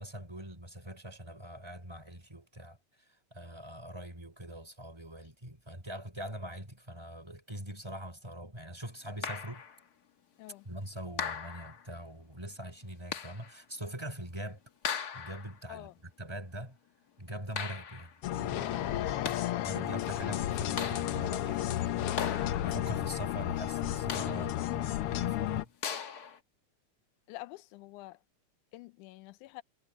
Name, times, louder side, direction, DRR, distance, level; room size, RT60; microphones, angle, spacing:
voice 1, 0.0-9.6 10.6-14.6 15.1-16.8 17.2-19.2 19.6-25.7, right 1 dB, 10° right, 4.8 m, -43 dB
sound 1, 9.2-9.8 11.2-11.9 13.1-13.6 14.8-15.6 17.6-18.2 19.0-19.7 20.8-21.4 22.2-22.9 24.1-24.7 25.8-26.4, left 7 dB, 50° left, 1.1 m, -38 dB
sound 2, 18.2-25.6, left 12 dB, 75° left, 1.3 m, -32 dB
voice 2, 27.3-28.2 28.7-29.6, left 18 dB, 90° left, 2.1 m, -47 dB
omnidirectional pair, 3.5 m